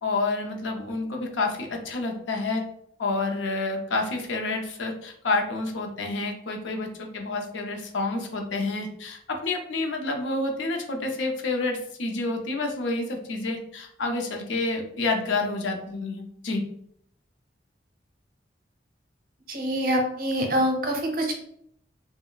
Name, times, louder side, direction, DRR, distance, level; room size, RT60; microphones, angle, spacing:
voice 1, 0.0-2.6 3.0-16.6, left 3 dB, 85° left, 3 dB, 0.5 m, -29 dB
voice 2, 19.5-21.3, equal, 50° right, 2 dB, 0.6 m, -25 dB
2.3 x 2.1 x 3.8 m, 0.69 s
head